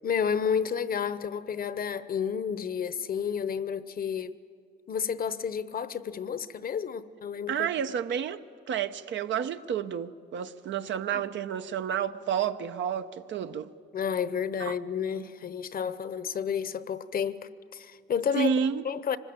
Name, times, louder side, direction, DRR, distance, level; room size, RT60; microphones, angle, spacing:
voice 1, 0.0-4.4 4.9-7.7 11.1-11.2 13.9-17.4 17.7-18.5 18.8-19.2, left 7 dB, 45° left, 0.9 m, -31 dB
voice 2, 7.5-8.4 8.7-13.7 14.6-14.8 18.3-18.8, right 8 dB, 70° right, 0.9 m, -30 dB
24.5 x 20.0 x 8.9 m
cardioid pair, 90°, 20 cm